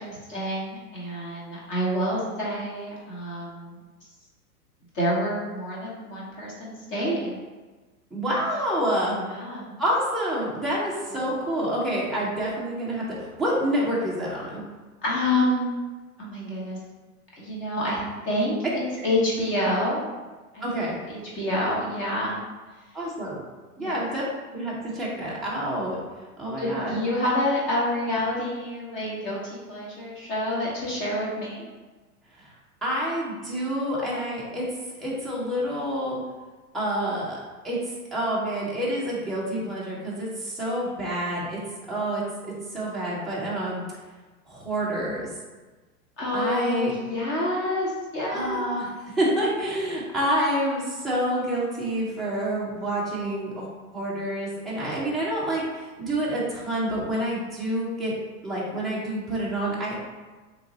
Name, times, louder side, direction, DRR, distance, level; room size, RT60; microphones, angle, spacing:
voice 1, 0.0-3.8 4.9-7.3 9.3-9.7 11.1-11.3 15.0-15.7 16.2-16.8 17.4-18.0 18.2-20.0 20.5-20.6 21.1-22.4 23.8-24.0 26.6-31.6 46.2-48.6, left 1 dB, 25° left, -6 dB, 1.1 m, -28 dB
voice 2, 8.1-9.2 9.8-14.6 19.0-19.1 20.6-21.0 22.9-23.4 23.8-24.2 24.5-26.0 26.4-27.0 32.4-32.5 32.8-34.7 35.0-36.2 36.7-37.8 38.1-41.6 41.9-43.8 44.5-45.3 46.3-46.9 48.3-53.7 53.9-58.1 58.4-60.0, right 1 dB, ahead, -8 dB, 0.5 m, -28 dB
3.1 x 2.4 x 3.8 m, 1.3 s
hypercardioid pair, 115°, 45 cm